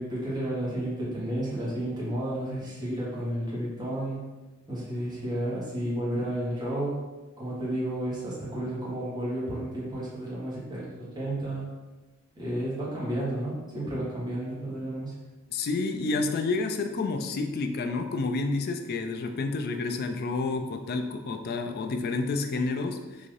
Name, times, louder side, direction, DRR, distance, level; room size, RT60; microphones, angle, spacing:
voice 1, 0.0-4.2 4.7-7.0 7.4-11.7 12.3-15.1, right 1 dB, 20° right, -8 dB, 1.2 m, -32 dB
voice 2, 15.5-23.0, left 3 dB, 50° left, 6 dB, 0.3 m, -29 dB
3.7 x 2.6 x 3.2 m, 1.1 s
head